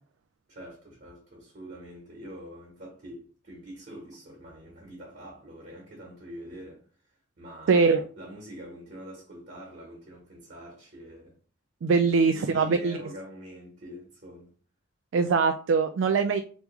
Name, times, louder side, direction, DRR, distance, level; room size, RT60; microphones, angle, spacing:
voice 1, 0.5-6.8 7.4-11.3 12.0-14.5, equal, 50° right, 1.5 m, -45 dB
voice 2, 7.7-8.0 11.8-13.0 15.1-16.4, right 4 dB, 75° right, 0.3 m, -22 dB
3.5 x 3.0 x 3.3 m
head